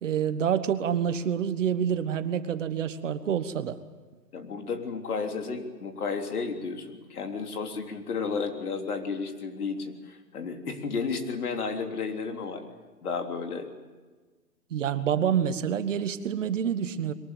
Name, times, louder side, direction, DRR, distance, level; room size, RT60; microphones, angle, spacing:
voice 1, 0.0-3.8 14.7-17.1, right 8 dB, 50° right, 11 dB, 1.4 m, -27 dB
voice 2, 4.3-12.6 13.0-13.7, left 5 dB, 65° left, 4 dB, 3.6 m, -32 dB
22.5 x 19.0 x 8.9 m, 1.3 s
hypercardioid pair, 160°, 48 cm